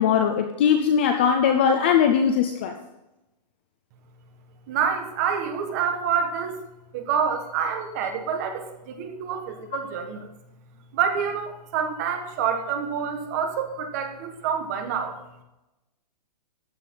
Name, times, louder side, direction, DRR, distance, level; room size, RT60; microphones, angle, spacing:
voice 1, 0.0-2.7, left 7 dB, 15° left, 6 dB, 0.5 m, -20 dB
voice 2, 4.7-6.6 6.9-10.3 10.9-15.1, right 7 dB, 25° right, 5 dB, 1.5 m, -27 dB
15.0 x 10.5 x 3.9 m, 0.96 s
hypercardioid pair, 175°, 21 cm